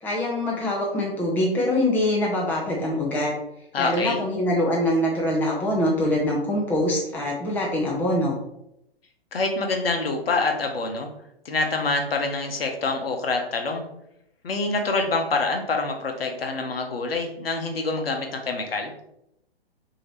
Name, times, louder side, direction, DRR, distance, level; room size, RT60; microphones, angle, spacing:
voice 1, 0.0-3.3 3.8-8.4, left 1 dB, 5° left, -3 dB, 0.6 m, -24 dB
voice 2, 3.7-4.2 9.3-11.1 11.4-13.8 14.4-18.9, left 3 dB, 65° left, 4 dB, 0.9 m, -26 dB
6.1 x 2.9 x 3.0 m, 0.81 s
figure-of-eight pair, 120°, 31 cm